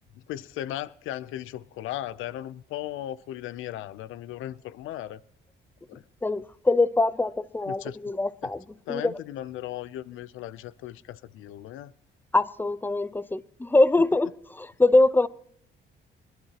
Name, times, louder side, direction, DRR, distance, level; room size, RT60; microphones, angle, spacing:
voice 1, 0.1-5.2 5.9-6.0 7.7-8.0 8.9-11.9, left 13 dB, 90° left, 0.6 m, -37 dB
voice 2, 6.2-8.6 8.9-9.1 12.3-15.3, left 2 dB, 10° left, 0.7 m, -23 dB
25.0 x 11.5 x 2.9 m
cardioid pair, 90°, 20 cm